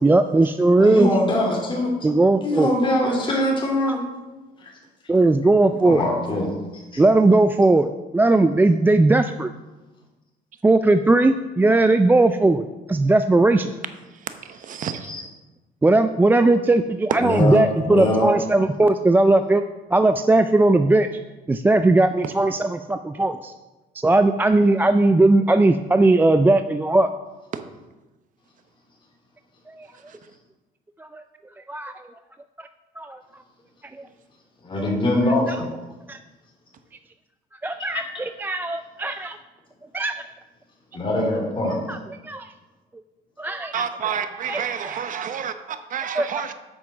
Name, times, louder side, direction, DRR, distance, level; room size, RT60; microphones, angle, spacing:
voice 1, 0.0-1.1 2.0-2.7 3.9-4.0 5.1-6.0 7.0-9.5 10.6-13.7 15.8-19.6 19.9-21.1 21.5-23.5 23.9-27.1 29.7-29.9 31.0-31.2 31.7-32.0 32.6-32.7 33.0-33.2 33.9-34.0 36.1-36.2 37.6-39.4 39.9-40.1 41.9-42.0 42.2-42.5 43.4-43.8 44.2-45.0 46.1-46.3, right 2 dB, 10° right, 9 dB, 0.3 m, -18 dB
voice 2, 0.8-2.1 2.4-4.0 4.6-4.7 5.8-7.0 15.0-15.2 17.2-18.3 34.6-35.7 37.9-38.2 40.9-41.8, left 1 dB, 30° left, -1 dB, 3.2 m, -23 dB
voice 3, 14.3-15.1 43.7-46.5, right 8 dB, 50° right, 9 dB, 0.9 m, -29 dB
8.8 x 6.2 x 6.0 m, 1.1 s
cardioid pair, 110°, 17 cm